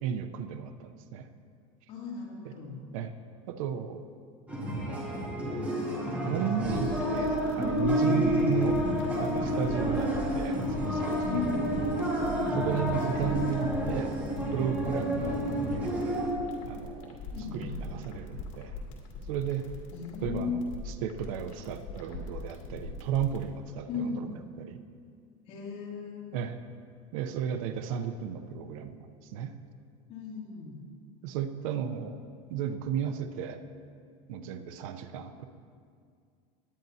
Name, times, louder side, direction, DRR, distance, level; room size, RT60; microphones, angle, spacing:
voice 1, 0.0-1.3 2.4-2.5 2.9-3.1 3.5-4.0 4.7-5.6 6.3-8.8 9.2-12.0 12.6-14.1 14.5-16.2 16.7-17.2 17.5-18.8 19.3-19.7 20.2-24.2 24.6-24.8 26.3-26.5 27.1-29.5 31.2-32.2 32.5-33.6 34.3-35.4, right 8 dB, 70° right, 8 dB, 0.7 m, -34 dB
voice 2, 1.9-2.8 8.1-8.5 11.3-11.7 12.3-12.7 17.3-17.8 19.9-20.7 23.9-24.3 25.5-26.3 30.1-30.9, left 4 dB, 35° left, -4 dB, 2.6 m, -36 dB
sound 1, 4.5-16.3, equal, 10° right, 1.8 m, -29 dB
sound 2, 6.6-23.4, left 4 dB, 70° left, 2.4 m, -42 dB
18.5 x 10.5 x 2.7 m, 2.2 s
supercardioid pair, 165°, 18 cm